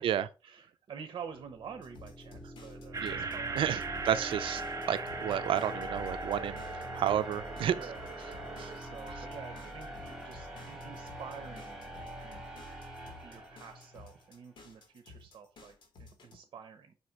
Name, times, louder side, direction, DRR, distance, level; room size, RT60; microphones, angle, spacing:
voice 1, 0.4-4.0 7.6-8.1 8.7-12.4 13.1-16.9, right 7 dB, 60° right, 1.0 m, -48 dB
sound 1, 1.3-14.2, equal, 5° right, 2.0 m, -43 dB
sound 2, 1.8-16.4, left 3 dB, 65° left, 2.2 m, -54 dB
sound 3, 2.9-8.8, right 4 dB, 40° right, 0.6 m, -40 dB
voice 2, 3.6-4.6 4.9-6.6 6.9-7.8 8.6-8.7 9.1-9.2, right 10 dB, 85° right, 0.5 m, -31 dB
5.8 x 4.3 x 4.7 m
wide cardioid pair, 150°, 9 cm